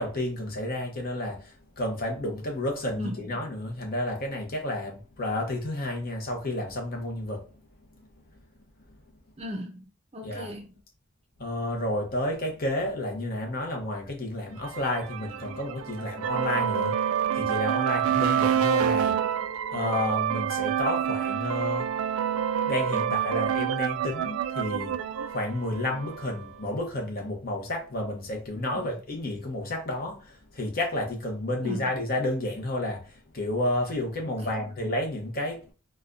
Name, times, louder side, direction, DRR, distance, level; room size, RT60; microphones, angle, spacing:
voice 1, 0.0-7.4 8.0-8.1 10.2-10.5 11.4-19.3 19.7-22.0 22.6-35.7, left 1 dB, 45° left, 0.9 m, -31 dB
voice 2, 3.0-3.3 9.4-10.8 19.0-19.2 28.7-28.8 31.6-31.9 34.2-34.7, equal, 30° right, 0.6 m, -38 dB
sound 1, 14.7-26.4, right 9 dB, 80° right, 0.3 m, -28 dB
4.2 x 2.3 x 2.5 m
head